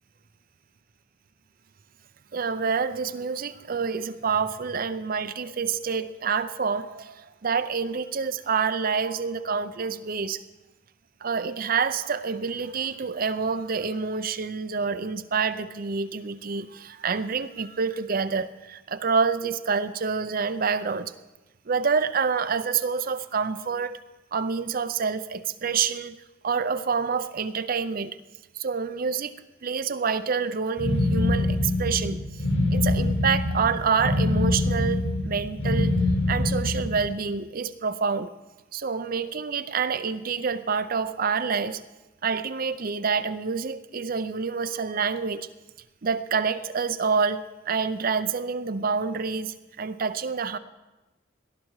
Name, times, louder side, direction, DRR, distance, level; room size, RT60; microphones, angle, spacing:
voice 1, 2.3-10.4 11.2-21.1 21.7-24.0 24.3-26.2 26.4-28.2 28.5-29.3 29.6-32.4 32.7-36.0 36.3-38.3 38.7-41.8 42.2-45.5 46.0-50.6, right 5 dB, 45° right, 13 dB, 0.6 m, -27 dB
sound 1, 30.8-37.1, left 2 dB, 80° left, 4.9 m, -24 dB
18.5 x 12.0 x 4.8 m, 1.1 s
head